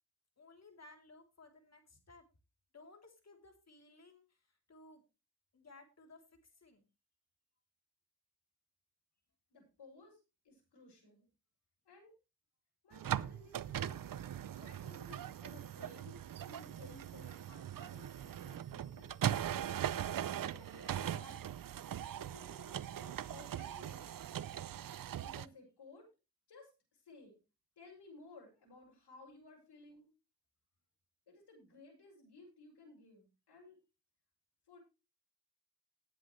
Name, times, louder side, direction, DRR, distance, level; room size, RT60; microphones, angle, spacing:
voice 1, 0.4-2.2 2.7-5.0 5.5-6.8, left 2 dB, 40° left, 4 dB, 3.3 m, -59 dB
voice 2, 9.5-10.2 10.4-11.3 11.9-12.1 12.8-14.0 14.5-16.2 16.5-19.1 20.4-21.6 22.1-24.1 25.2-26.1 26.5-27.4 27.8-30.1 31.3-33.8 34.7-34.8, left 3 dB, 85° left, -1 dB, 7.0 m, -58 dB
sound 1, 12.9-25.5, right 10 dB, 55° right, 0.6 m, -40 dB
19.0 x 7.7 x 3.2 m, 0.29 s
wide cardioid pair, 135°, 40 cm